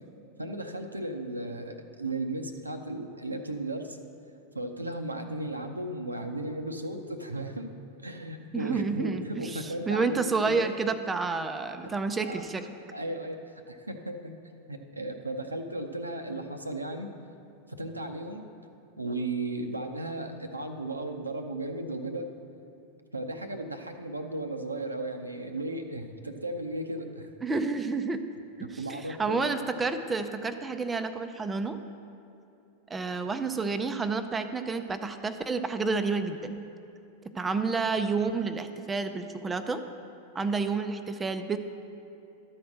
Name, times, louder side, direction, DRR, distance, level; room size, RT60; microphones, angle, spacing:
voice 1, 0.4-4.0 4.5-7.7 8.0-10.7 11.8-11.9 12.2-12.4 12.9-14.4 14.7-17.1 17.8-18.4 19.0-22.3 23.1-27.3 28.6-29.8, right 1 dB, 80° right, 5 dB, 0.6 m, -35 dB
voice 2, 8.5-12.7 27.4-28.2 28.6-31.8 32.9-36.6 37.3-39.8 40.3-41.6, right 4 dB, 15° right, 7 dB, 0.4 m, -30 dB
12.5 x 4.3 x 6.4 m, 2.8 s
figure-of-eight pair, 90°, 0 cm